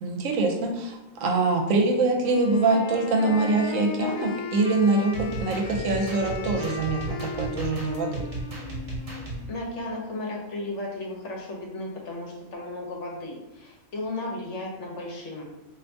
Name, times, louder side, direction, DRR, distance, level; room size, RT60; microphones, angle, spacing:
voice 1, 0.0-8.3, right 3 dB, 80° right, 2 dB, 1.0 m, -24 dB
Wind instrument woodwind instrument, 2.2-10.1, left 3 dB, 90° left, 1.0 m, -37 dB
sound 1, 5.1-9.4, right 1 dB, 35° right, 0.7 m, -35 dB
voice 2, 9.5-15.4, left 2 dB, 65° left, -2 dB, 1.0 m, -35 dB
2.6 x 2.6 x 3.3 m, 0.97 s
omnidirectional pair, 1.4 m